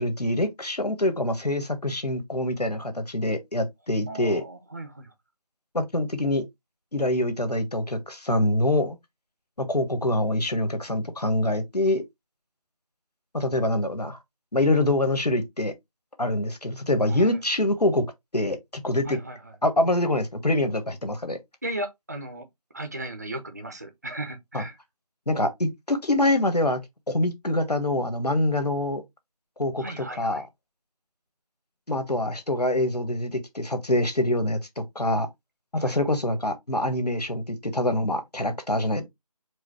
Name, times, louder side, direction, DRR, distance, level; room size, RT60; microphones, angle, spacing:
voice 1, 0.0-4.4 5.7-6.4 6.9-9.0 9.6-12.0 13.3-14.2 14.5-15.7 16.2-18.0 18.3-19.2 19.6-21.4 24.5-24.6 25.3-26.8 27.1-29.0 29.6-29.8 30.2-30.4 31.9-35.3 35.7-39.1, left 1 dB, 90° left, 1.4 m, -25 dB
voice 2, 4.1-5.1 17.1-17.4 19.0-19.5 21.6-22.5 22.7-24.8 29.8-30.5 35.7-36.0, right 1 dB, 25° right, 0.6 m, -36 dB
4.9 x 2.1 x 4.7 m
figure-of-eight pair, 165°, 20 cm